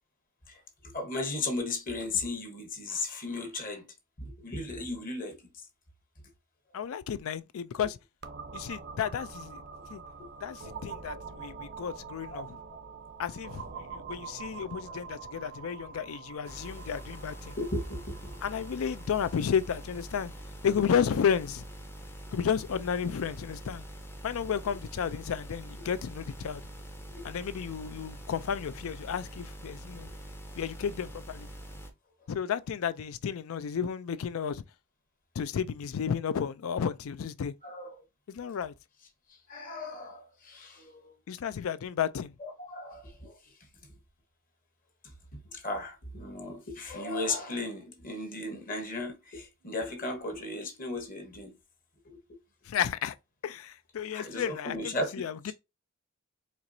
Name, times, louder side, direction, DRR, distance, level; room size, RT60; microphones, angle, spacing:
voice 1, 0.5-3.8 4.2-5.7 6.8-6.9 10.2-10.3 12.3-12.4 14.9-15.0 17.6-18.4 27.1-27.2 30.1-30.2 37.6-38.0 39.3-41.1 42.4-43.5 45.3-51.5 52.0-52.2 54.1-55.5, left 2 dB, 40° left, 1.1 m, -36 dB
voice 2, 6.7-8.0 8.5-9.6 9.9-10.0 10.4-12.6 13.2-17.6 18.4-20.3 20.6-21.6 22.3-23.8 24.2-26.6 27.2-30.1 30.6-31.5 32.3-34.6 35.4-37.5 38.3-38.7 41.3-42.3 47.3-47.4 52.7-53.1 53.4-55.5, left 7 dB, 70° left, 0.4 m, -32 dB
sound 1, 8.2-21.8, right 5 dB, 50° right, 0.6 m, -45 dB
sound 2, 16.4-31.9, right 1 dB, 10° left, 0.6 m, -44 dB
4.4 x 2.9 x 2.6 m
head